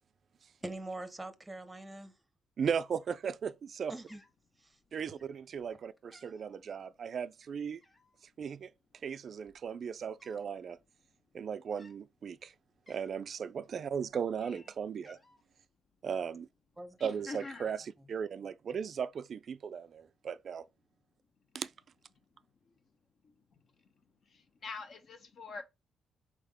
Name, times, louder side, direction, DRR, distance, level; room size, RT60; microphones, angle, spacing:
voice 1, 0.6-2.1 3.9-4.2 4.6-4.8 16.8-17.0, right 2 dB, 15° right, 0.7 m, -43 dB
Cat, 2.6-3.3 3.6-3.8 4.1-5.1 5.6-5.7 6.0-6.6 7.8-8.2 9.0-9.1 9.3-10.5 10.8-11.0 11.7-12.0 12.5-12.6 12.9-13.4 13.8-15.5 16.3-16.8 17.1-17.7, left 1 dB, 20° left, 1.4 m, -62 dB
voice 2, 2.6-3.9 4.9-7.8 8.4-8.7 9.0-10.8 11.3-12.5 12.9-15.2 16.0-16.5 17.0-20.7 21.5-21.7, right 7 dB, 50° right, 0.3 m, -37 dB
voice 3, 17.3-17.8 22.6-22.7 23.2-23.3 23.8-23.9 24.3-25.6, left 4 dB, 55° left, 1.0 m, -45 dB
4.2 x 3.6 x 3.4 m
cardioid pair, 90°, 0 cm